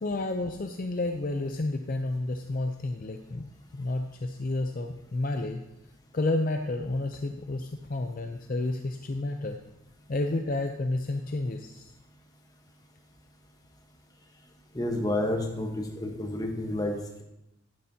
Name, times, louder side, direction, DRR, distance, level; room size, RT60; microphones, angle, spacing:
voice 1, 0.0-5.6 6.1-9.6 10.1-11.9, left 2 dB, 40° left, 5 dB, 0.5 m, -31 dB
voice 2, 14.7-17.2, left 1 dB, 20° left, 2 dB, 1.1 m, -30 dB
11.0 x 10.0 x 2.8 m, 0.91 s
head